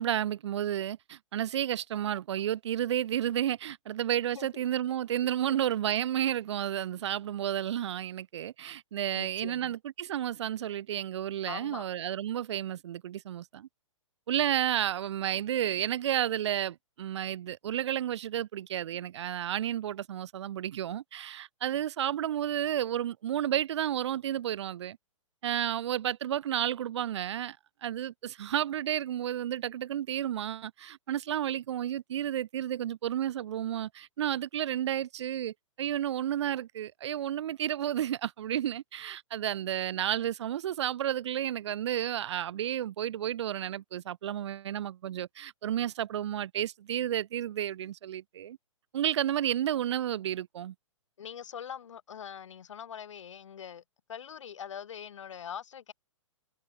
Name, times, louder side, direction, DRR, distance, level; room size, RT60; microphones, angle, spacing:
voice 1, 0.0-13.7 14.3-25.0 25.4-27.6 27.8-48.6 48.9-50.7, right 11 dB, 60° right, 0.4 m, -31 dB
voice 2, 9.1-9.7 11.5-11.9 51.2-53.8 54.1-55.9, left 8 dB, 70° left, 1.1 m, -43 dB
figure-of-eight pair, 120°, 17 cm